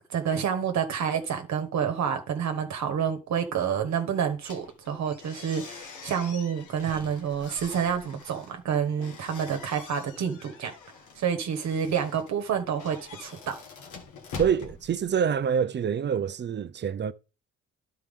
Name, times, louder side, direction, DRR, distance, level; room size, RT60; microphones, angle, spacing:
voice 1, 0.1-10.7 11.1-13.6, right 7 dB, 65° right, 1.2 m, -28 dB
sound 1, 4.4-15.5, left 4 dB, 85° left, 1.6 m, -45 dB
voice 2, 14.4-17.1, right 7 dB, 35° right, 0.5 m, -26 dB
11.5 x 4.5 x 3.6 m
cardioid pair, 90°, 30 cm